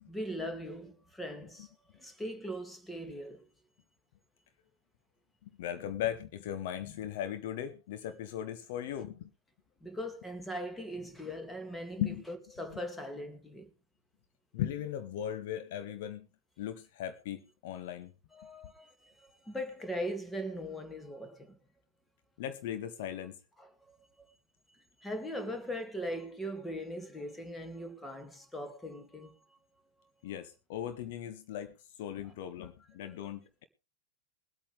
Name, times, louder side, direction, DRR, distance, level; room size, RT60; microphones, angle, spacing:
voice 1, 0.1-3.5 9.8-13.7 18.3-21.6 23.6-24.3 24.7-29.6 30.3-30.4 32.2-32.3 33.0-33.3, equal, 10° left, 2.4 m, -40 dB
voice 2, 5.4-9.3 12.0-12.2 14.5-16.3 16.6-18.1 22.4-23.3 30.2-33.6, left 11 dB, 50° left, 1.1 m, -38 dB
22.0 x 8.7 x 3.4 m
figure-of-eight pair, 90°, 0 cm